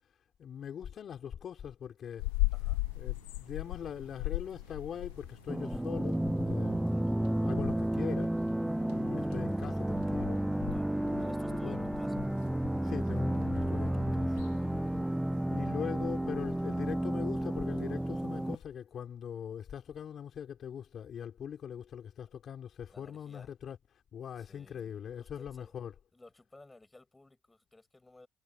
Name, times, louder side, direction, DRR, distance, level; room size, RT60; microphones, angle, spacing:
voice 1, 0.4-2.3 3.0-6.8 7.4-8.4 8.9-10.4 10.9-11.9 12.8-14.3 15.5-23.8 24.1-25.9, left 8 dB, 55° left, 3.8 m, -41 dB
sound 1, 2.2-18.6, left 22 dB, 85° left, 0.8 m, -41 dB
voice 2, 2.5-2.8 6.9-7.1 10.7-12.2 14.3-14.9 22.9-23.5 24.4-25.8 26.1-28.3, left 2 dB, 20° left, 6.7 m, -58 dB
sound 2, 2.5-11.7, right 33 dB, 85° right, 6.6 m, -60 dB
sound 3, 5.5-18.6, right 1 dB, 5° right, 0.4 m, -32 dB
hypercardioid pair, 55°, 0 cm